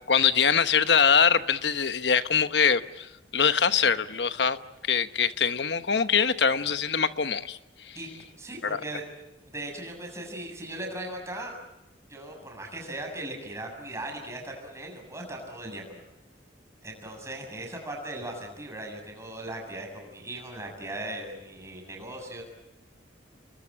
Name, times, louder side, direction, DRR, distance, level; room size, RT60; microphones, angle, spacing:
voice 1, 0.1-4.6 4.9-8.0 8.6-8.8, left 6 dB, 75° left, 1.1 m, -23 dB
voice 2, 8.4-9.0 9.5-11.5 12.1-16.0 16.8-22.4, right 1 dB, 15° right, 7.0 m, -38 dB
29.0 x 22.0 x 8.7 m
head